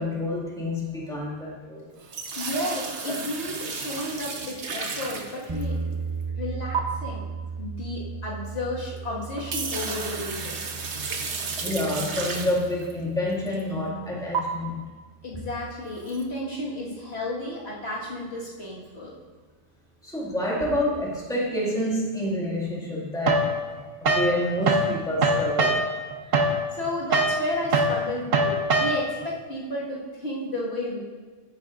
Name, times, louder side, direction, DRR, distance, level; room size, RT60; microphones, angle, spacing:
voice 1, 0.0-1.9 11.6-14.8 15.3-15.4 20.0-23.5 24.0-25.8, left 1 dB, 5° left, -5 dB, 1.9 m, -28 dB
sound 1, 2.0-5.9 6.7-6.8 8.8-8.9 9.2-12.9 13.5-13.6 14.3-14.4 16.0-16.2, right 5 dB, 65° right, 1.2 m, -32 dB
voice 2, 2.4-6.0 6.3-7.3 7.6-10.6 15.2-19.2 26.2-26.4 26.7-31.0, left 1 dB, 60° left, -6 dB, 2.0 m, -32 dB
sound 2, 5.5-15.5, right 5 dB, 25° right, 0.6 m, -37 dB
sound 3, 23.3-24.9 25.2-29.3, right 2 dB, 90° right, 1.3 m, -23 dB
14.0 x 8.9 x 2.5 m, 1.4 s
omnidirectional pair, 1.3 m